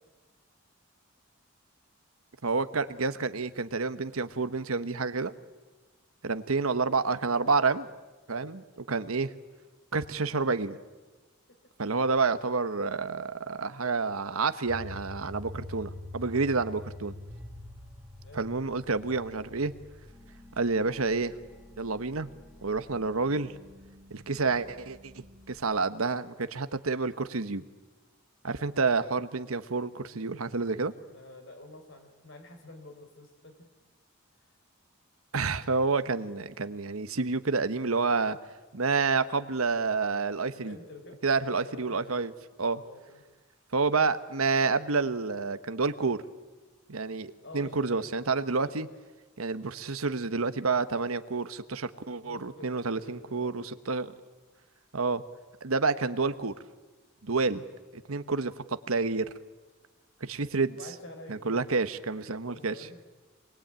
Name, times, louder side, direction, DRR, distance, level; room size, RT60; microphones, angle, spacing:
voice 1, 2.4-5.3 6.2-7.9 8.3-9.3 9.9-10.8 11.8-17.1 18.3-19.7 20.6-21.3 21.8-22.3 22.6-23.5 24.1-27.6 28.4-30.9 35.3-38.4 38.7-40.8 41.2-42.3 42.6-42.8 43.7-46.2 46.9-48.9 49.4-54.1 54.9-55.2 55.6-56.5 57.2-57.6 58.1-59.3 60.2-60.8 61.3-62.7, right 4 dB, 80° right, 11 dB, 1.2 m, -29 dB
sound 1, 14.7-25.6, left 1 dB, 5° right, 2.6 m, -47 dB
voice 2, 18.2-18.6 31.1-33.7 34.4-34.5 40.5-41.2 41.5-42.3 42.7-43.2 47.4-48.1 48.6-49.0 52.2-53.6 60.4-63.0, left 2 dB, 60° left, 6 dB, 4.4 m, -49 dB
27.5 x 21.0 x 9.0 m, 1.3 s
head